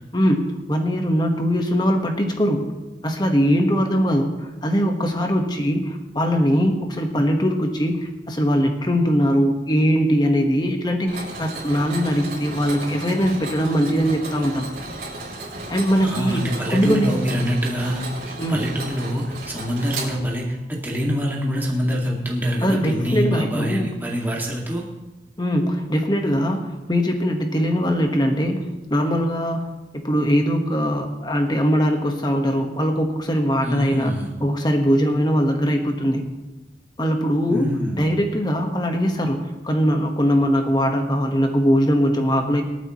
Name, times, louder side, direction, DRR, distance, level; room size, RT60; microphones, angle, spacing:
voice 1, 0.1-2.7 3.0-14.7 15.7-17.2 18.4-18.7 22.6-23.9 25.4-34.1 34.4-36.3 37.0-37.7 38.0-42.6, equal, 25° left, 4 dB, 1.4 m, -21 dB
Mechanisms, 11.1-20.6, right 2 dB, 55° right, 5.8 m, -34 dB
voice 2, 16.0-24.8 33.6-34.3 37.5-38.0, equal, 10° right, -3 dB, 2.2 m, -25 dB
26.0 x 9.1 x 3.1 m, 1.1 s
head